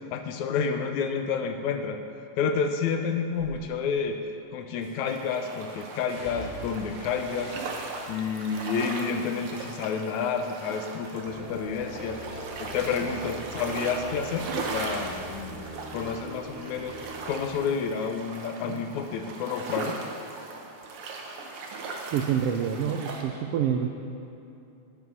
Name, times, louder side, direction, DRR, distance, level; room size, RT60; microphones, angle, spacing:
voice 1, 0.0-2.0 2.4-4.2 4.5-7.5 8.1-12.2 12.6-15.7 15.9-17.0 17.3-20.0, left 6 dB, 80° left, 6 dB, 2.1 m, -29 dB
sound 1, 3.3-3.6 4.8-5.3 6.1-10.3 10.6-11.3 11.6-14.9 15.2-16.3 16.6-16.7, equal, 25° left, 3.0 m, -47 dB
sound 2, 5.1-23.2, right 3 dB, 60° right, 1.6 m, -39 dB
sound 3, 11.2-17.7, right 1 dB, 5° right, 2.0 m, -41 dB
voice 2, 22.1-23.9, right 8 dB, 85° right, 3 dB, 1.3 m, -27 dB
10.0 x 9.8 x 5.3 m, 2.7 s
omnidirectional pair, 3.3 m